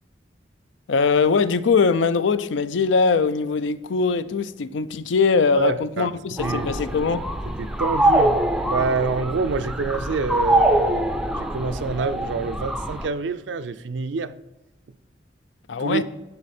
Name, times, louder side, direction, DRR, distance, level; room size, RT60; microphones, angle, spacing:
voice 1, 0.9-7.2 15.7-16.0, left 5 dB, 80° left, 0.5 m, -21 dB
voice 2, 5.6-6.1 6.4-6.8 7.6-14.3 15.8-16.0, right 4 dB, 75° right, 0.4 m, -27 dB
sound 1, 6.4-13.1, right 1 dB, 5° right, 0.4 m, -24 dB
10.5 x 4.1 x 4.3 m
head